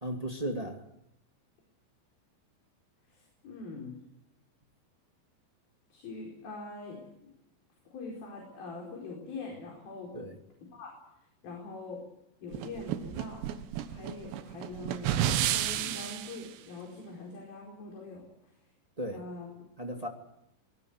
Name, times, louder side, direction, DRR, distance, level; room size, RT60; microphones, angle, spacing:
voice 1, 0.0-0.8 10.1-10.4 19.0-19.2 19.8-20.1, right 1 dB, 35° right, 2 dB, 0.6 m, -35 dB
voice 2, 3.1-4.0 5.9-7.3 7.9-10.1 10.7-11.0 11.4-12.0 12.4-18.3 19.1-19.5, left 3 dB, 55° left, -1 dB, 6.4 m, -43 dB
sound 1, 12.5-16.4, right 11 dB, 80° right, 3.3 m, -31 dB
25.0 x 20.0 x 8.1 m, 0.81 s
omnidirectional pair, 5.0 m